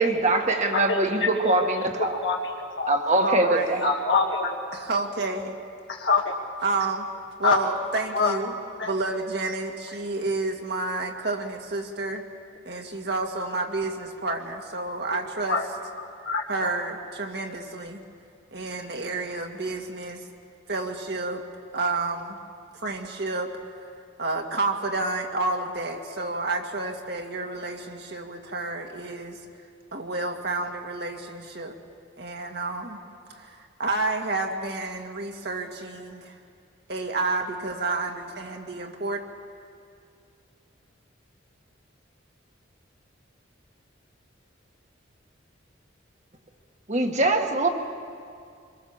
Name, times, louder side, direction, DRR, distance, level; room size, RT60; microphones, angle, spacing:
voice 1, 0.0-2.1 2.9-3.8 46.9-47.7, right 2 dB, 35° right, 3 dB, 1.7 m, -22 dB
voice 2, 0.7-1.3 2.0-2.9 3.8-4.6 6.0-6.2 7.4-7.7 8.1-8.4 8.8-8.9 15.5-15.6 16.2-16.8, left 4 dB, 70° left, -2 dB, 1.7 m, -25 dB
voice 3, 3.2-3.9 4.7-5.6 6.6-7.1 7.4-8.5 8.8-12.2 12.7-15.6 16.5-18.0 18.5-20.2 20.7-21.4 21.7-22.4 22.8-23.5 24.2-29.4 29.9-31.8 32.2-33.0 33.3-36.4 36.9-39.2, right 3 dB, 60° right, 3 dB, 2.0 m, -30 dB
25.5 x 22.0 x 7.3 m, 2.3 s
head